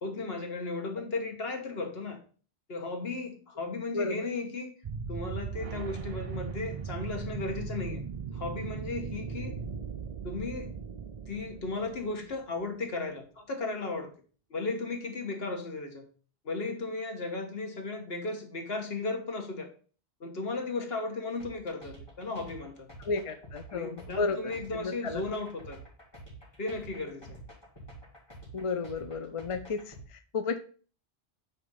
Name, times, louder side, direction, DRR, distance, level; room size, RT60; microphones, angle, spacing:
voice 1, 0.0-2.2 2.7-4.7 5.1-8.0 8.3-9.6 10.2-10.7 11.3-14.1 14.5-16.0 16.4-19.7 20.2-22.9 23.7-25.8 26.6-27.4, left 3 dB, 60° left, 3 dB, 1.5 m, -35 dB
voice 2, 3.9-4.3 23.0-24.5 24.8-25.2 28.5-30.6, left 4 dB, 40° left, 9 dB, 0.5 m, -33 dB
sound 1, 4.8-12.6, right 6 dB, 50° right, 0.4 m, -38 dB
sound 2, 21.4-30.1, right 2 dB, 20° left, 2.5 m, -48 dB
8.1 x 2.9 x 5.4 m, 0.40 s
omnidirectional pair, 1.1 m